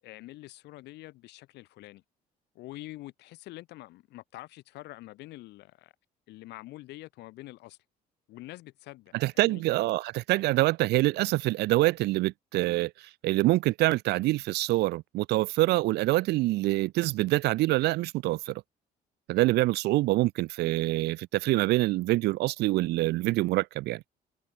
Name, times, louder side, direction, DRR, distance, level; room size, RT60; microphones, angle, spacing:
voice 1, 0.0-2.0 2.5-5.9 6.3-7.8 8.3-9.6, left 18 dB, 85° left, 7.5 m, -46 dB
voice 2, 9.2-18.6 19.3-24.0, right 18 dB, 80° right, 0.9 m, -26 dB
cardioid pair, 110°, 17 cm